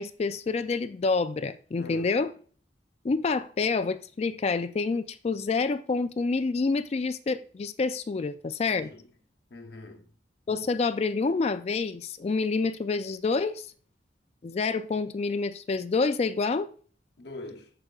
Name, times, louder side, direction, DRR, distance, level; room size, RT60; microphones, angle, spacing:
voice 1, 0.0-2.3 3.0-8.9 10.5-13.7 14.4-16.7, left 4 dB, 35° left, 0.3 m, -28 dB
voice 2, 1.7-2.2 8.7-9.1 9.5-10.2 17.2-17.7, left 2 dB, 70° left, 0.9 m, -43 dB
13.0 x 4.9 x 2.4 m
head